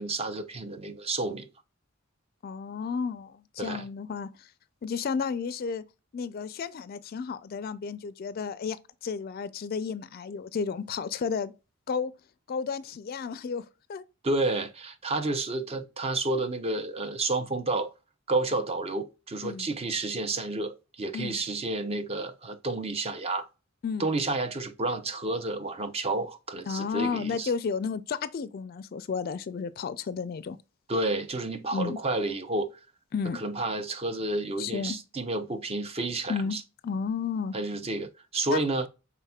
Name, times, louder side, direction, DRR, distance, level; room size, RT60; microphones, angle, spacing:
voice 1, 0.0-1.5 3.6-3.8 14.2-17.9 18.3-23.5 24.0-27.5 30.9-32.7 33.3-36.6 37.5-38.9, right 2 dB, 30° right, 0.5 m, -30 dB
voice 2, 2.4-4.5 4.8-5.8 6.1-8.8 9.0-11.5 11.9-12.1 12.5-13.6 13.9-14.0 19.4-19.7 21.1-21.4 23.8-24.1 26.7-30.6 31.7-32.0 33.1-33.4 34.6-35.0 36.3-36.6 36.8-37.5 38.5-38.6, left 5 dB, 45° left, 0.4 m, -32 dB
5.7 x 3.4 x 2.3 m
head